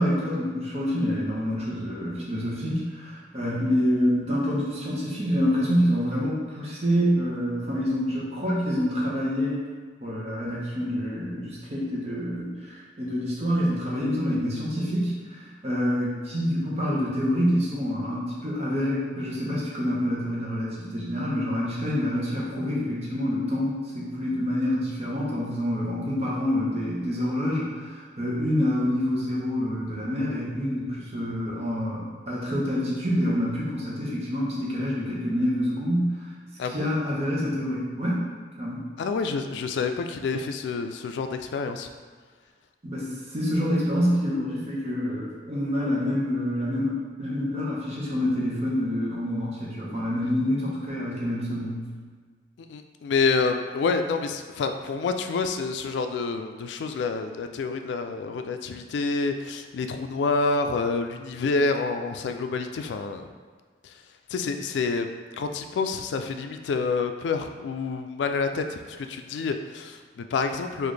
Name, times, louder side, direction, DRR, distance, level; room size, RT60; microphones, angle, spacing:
voice 1, 0.0-9.6 10.0-36.3 36.7-38.2 38.6-38.8 42.8-51.9, equal, 40° right, -6 dB, 0.9 m, -27 dB
voice 2, 39.0-41.9 52.6-63.3 63.8-64.0 64.3-70.9, left 4 dB, 90° left, 7 dB, 0.3 m, -28 dB
3.9 x 2.5 x 3.2 m, 1.6 s
head